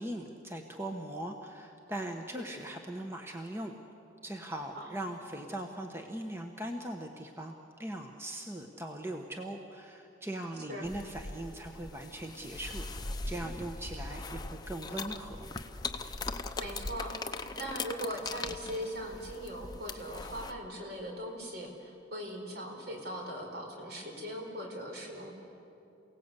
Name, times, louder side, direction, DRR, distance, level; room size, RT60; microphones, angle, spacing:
voice 1, 0.0-3.7 4.2-7.5 7.8-15.5, right 1 dB, 15° right, 3 dB, 1.1 m, -40 dB
sound 1, 10.8-20.5, left 3 dB, 20° left, 0.8 m, -40 dB
voice 2, 16.6-25.3, equal, 60° right, 1 dB, 4.4 m, -40 dB
28.0 x 17.5 x 8.3 m, 2.8 s
head